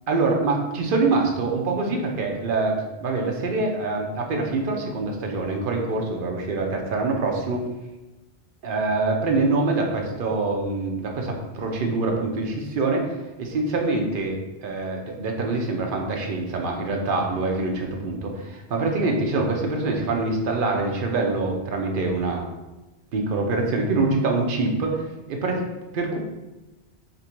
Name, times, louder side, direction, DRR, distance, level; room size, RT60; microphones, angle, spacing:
voice 1, 0.1-7.7 8.6-14.4 14.6-22.4 23.1-25.7 25.9-26.2, right 3 dB, 60° right, 1 dB, 0.8 m, -25 dB
3.4 x 2.6 x 4.4 m, 1.1 s
omnidirectional pair, 1.1 m